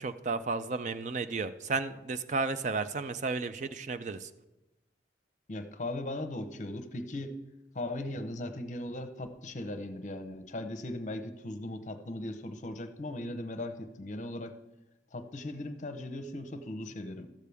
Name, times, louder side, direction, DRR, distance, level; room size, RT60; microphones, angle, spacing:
voice 1, 0.0-4.3, right 4 dB, 45° right, 11 dB, 0.4 m, -33 dB
voice 2, 5.5-7.4 7.7-14.5 15.1-17.3, left 1 dB, 45° left, 9 dB, 0.7 m, -38 dB
13.5 x 8.3 x 3.5 m, 0.96 s
head